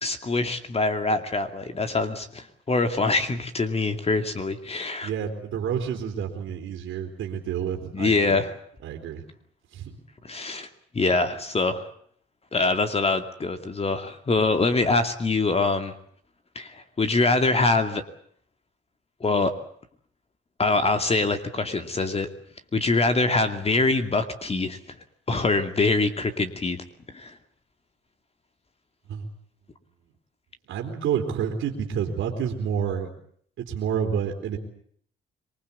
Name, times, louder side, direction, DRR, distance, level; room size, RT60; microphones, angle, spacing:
voice 1, 0.0-5.1 7.9-8.5 10.2-10.7 10.9-11.9 12.5-15.9 16.6-18.0 19.2-19.5 20.6-22.3 22.7-24.8 25.3-26.8 27.1-27.4, left 3 dB, 30° left, 7 dB, 2.5 m, -24 dB
voice 2, 5.0-8.4 8.8-9.2 9.7-10.0 29.1-29.3 30.7-33.1 33.6-34.6, right 8 dB, 80° right, 2 dB, 3.7 m, -29 dB
26.0 x 20.0 x 8.4 m, 0.62 s
cardioid pair, 90°, 20 cm